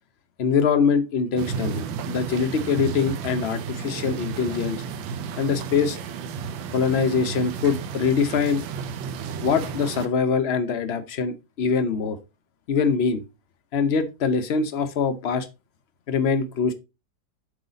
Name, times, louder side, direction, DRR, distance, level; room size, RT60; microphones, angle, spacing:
voice 1, 0.4-4.8 5.4-6.0 6.7-8.6 9.4-12.2 12.7-13.2 13.7-15.5 16.1-16.7, left 5 dB, 75° left, 0.5 m, -23 dB
sound 1, 1.4-10.1, right 6 dB, 85° right, 1.5 m, -32 dB
8.0 x 3.9 x 4.0 m
omnidirectional pair, 2.0 m